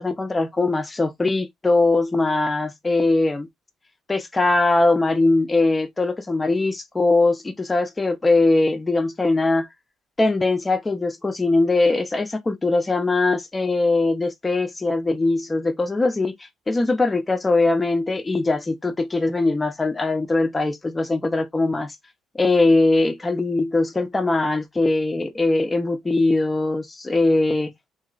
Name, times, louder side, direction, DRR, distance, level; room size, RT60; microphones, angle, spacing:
voice 1, 0.0-3.5 4.1-9.7 10.2-16.3 16.7-21.9 22.3-27.7, left 2 dB, 25° left, 0.8 m, -21 dB
2.9 x 2.8 x 2.4 m
supercardioid pair, 65°, 0 cm